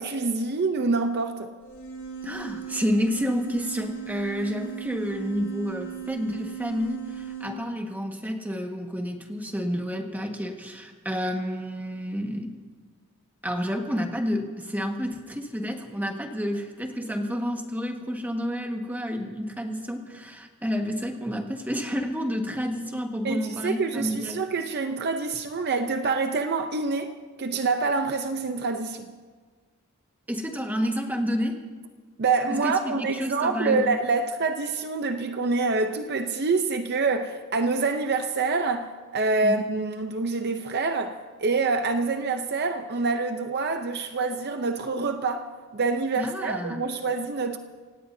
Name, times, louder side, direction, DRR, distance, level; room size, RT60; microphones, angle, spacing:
voice 1, 0.0-1.5 23.2-29.1 32.2-47.6, right 3 dB, 50° right, 0.7 m, -26 dB
sound 1, 1.6-7.5, right 9 dB, 70° left, 5.4 m, -37 dB
voice 2, 2.2-12.6 13.4-24.4 30.3-31.6 32.5-33.9 39.4-39.6 46.1-46.8, equal, 10° right, 1.5 m, -30 dB
26.5 x 17.5 x 2.7 m
head